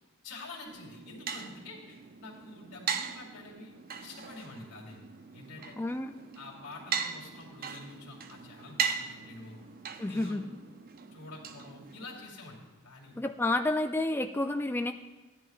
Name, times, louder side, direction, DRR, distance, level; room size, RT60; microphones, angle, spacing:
voice 1, 0.2-3.7 4.0-5.0 5.3-5.7 6.4-9.6 10.0-10.4 11.1-12.6 12.8-13.1, left 3 dB, 85° left, -1 dB, 2.4 m, -47 dB
sound 1, 0.7-12.3, right 6 dB, 45° right, 0.5 m, -39 dB
voice 2, 5.8-6.2 10.0-10.5 13.2-14.9, left 2 dB, 10° left, 6 dB, 0.3 m, -30 dB
15.0 x 10.5 x 2.4 m, 1.2 s
head